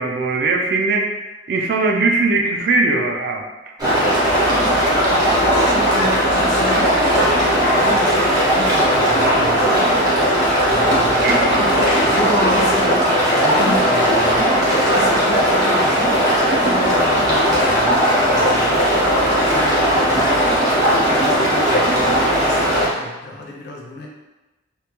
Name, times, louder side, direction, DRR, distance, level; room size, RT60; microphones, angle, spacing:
voice 1, 0.0-3.4 11.2-11.4, right 3 dB, 55° right, 1 dB, 0.3 m, -20 dB
sound 1, 3.8-22.9, equal, 20° right, 0.6 m, -17 dB
voice 2, 5.0-9.9 10.6-16.3 16.6-18.9 19.3-20.5 20.9-24.1, left 2 dB, 55° left, -1 dB, 0.4 m, -30 dB
2.2 x 2.1 x 2.9 m, 1.1 s
head